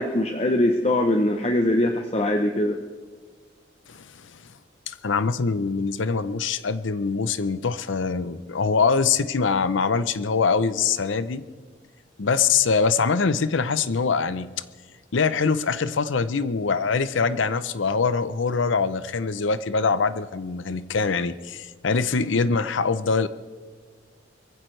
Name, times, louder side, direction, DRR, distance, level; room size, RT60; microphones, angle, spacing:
voice 1, 0.0-2.8, left 1 dB, 30° left, 5 dB, 0.7 m, -22 dB
voice 2, 3.9-4.3 4.9-11.4 12.2-14.5 15.1-23.3, left 5 dB, 70° left, 14 dB, 0.6 m, -23 dB
22.5 x 15.5 x 3.3 m, 1.5 s
head